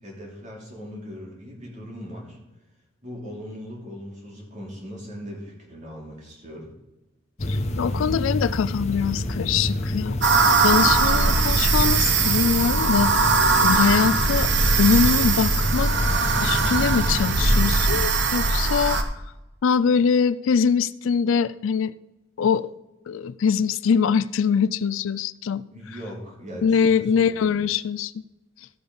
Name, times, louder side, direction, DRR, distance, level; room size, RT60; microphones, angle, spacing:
voice 1, 0.0-2.4 3.0-6.7 25.7-27.6, equal, 35° right, -2 dB, 2.9 m, -39 dB
sound 1, 7.4-18.1, left 1 dB, 35° left, 0.8 m, -29 dB
voice 2, 7.5-10.2 10.6-13.1 13.6-16.1 16.4-19.0 19.6-21.9 22.4-22.7 23.1-25.6 26.6-28.1, left 6 dB, 75° left, 17 dB, 0.4 m, -23 dB
sound 2, 10.2-19.0, right 4 dB, 60° right, 0.9 m, -20 dB
15.0 x 5.2 x 5.4 m, 1.0 s
head